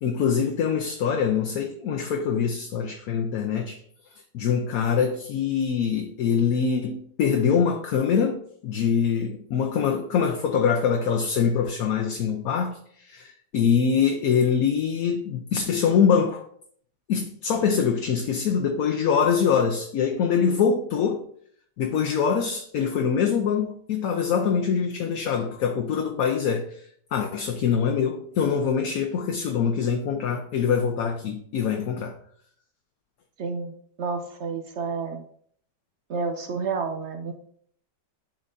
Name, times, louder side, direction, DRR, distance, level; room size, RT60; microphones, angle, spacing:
voice 1, 0.0-3.8 4.3-16.4 17.1-21.2 21.8-26.9 27.1-32.2, left 7 dB, 65° left, 1.0 m, -24 dB
voice 2, 33.4-35.2 36.1-37.3, right 4 dB, 70° right, 0.6 m, -30 dB
11.5 x 3.9 x 2.6 m
omnidirectional pair, 1.9 m